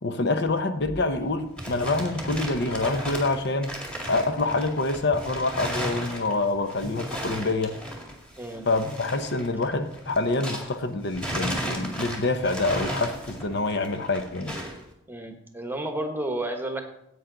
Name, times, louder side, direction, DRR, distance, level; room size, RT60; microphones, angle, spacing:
voice 1, 0.0-3.7 4.1-7.8 8.7-14.6, left 2 dB, 55° left, 8 dB, 0.9 m, -26 dB
sound 1, 1.2-10.8 11.1-14.8, equal, 5° left, 2.0 m, -35 dB
voice 2, 15.1-16.9, right 1 dB, 10° right, 5 dB, 1.2 m, -31 dB
16.0 x 8.4 x 3.9 m, 0.79 s
head